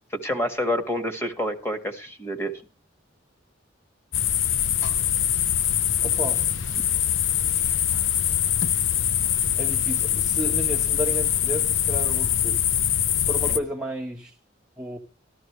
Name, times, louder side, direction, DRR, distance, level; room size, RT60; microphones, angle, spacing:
voice 1, 0.1-2.6 6.8-6.9 13.4-13.6, left 1 dB, 15° left, 1.7 m, -28 dB
sound 1, 4.1-13.6, left 10 dB, 85° left, 0.7 m, -23 dB
voice 2, 6.0-6.4 7.4-7.8 9.6-12.6 13.1-14.3 14.8-15.0, equal, 5° right, 1.1 m, -32 dB
13.5 x 13.0 x 3.1 m
head